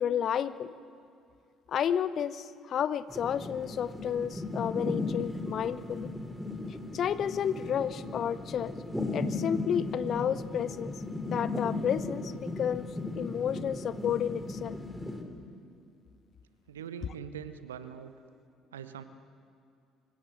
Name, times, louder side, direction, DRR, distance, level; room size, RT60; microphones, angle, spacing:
voice 1, 0.0-0.7 1.7-6.1 6.9-8.7 9.1-10.9 11.3-12.3 12.6-12.9 13.2-14.8, left 9 dB, 45° left, 15 dB, 0.8 m, -31 dB
sound 1, 3.1-15.2, left 2 dB, ahead, 3.4 m, -36 dB
voice 2, 16.7-18.1 18.7-19.0, right 8 dB, 75° right, 12 dB, 0.9 m, -42 dB
25.0 x 16.0 x 7.9 m, 2.5 s
figure-of-eight pair, 50°, 0 cm